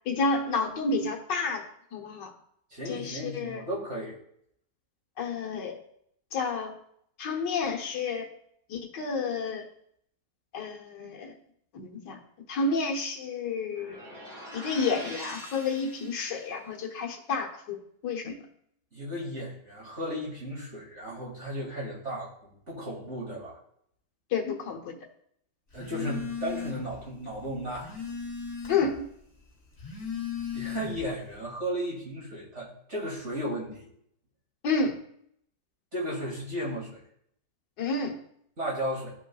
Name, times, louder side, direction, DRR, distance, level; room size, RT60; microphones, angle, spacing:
voice 1, 0.1-1.6 1.9-2.3 2.9-3.6 5.2-5.8 6.3-6.7 7.2-8.3 8.7-9.6 10.5-11.3 11.7-12.2 12.5-14.0 14.5-17.8 18.0-18.4 24.3-25.0 28.7-29.1 34.6-34.9 37.8-38.2, left 4 dB, 75° left, 1 dB, 1.7 m, -30 dB
voice 2, 2.7-4.1 18.9-23.6 25.7-27.9 30.5-33.9 35.9-37.0 38.6-39.1, equal, 40° right, -5 dB, 3.0 m, -35 dB
sound 1, 13.7-16.5, equal, 60° right, 3.7 m, -44 dB
Telephone, 25.7-27.0 27.4-29.0 29.7-31.2, left 7 dB, 35° left, 2.7 m, -37 dB
14.0 x 5.3 x 2.3 m, 0.69 s
omnidirectional pair, 1.9 m